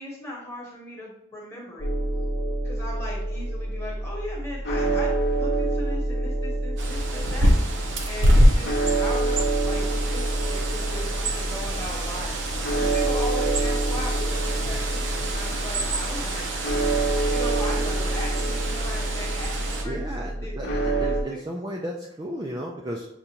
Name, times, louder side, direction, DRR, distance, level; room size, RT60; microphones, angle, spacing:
voice 1, 0.0-1.9 2.6-12.4 12.7-16.6 17.3-20.0 20.4-20.5 21.0-21.4, left 1 dB, 15° left, -4 dB, 1.1 m, -38 dB
sound 1, 1.8-21.2, right 2 dB, 55° left, 0.6 m, -27 dB
Bird, 6.8-19.8, right 1 dB, 70° right, 0.7 m, -26 dB
voice 2, 19.8-23.1, equal, 20° right, -2 dB, 0.3 m, -34 dB
6.6 x 2.4 x 2.8 m, 0.82 s
head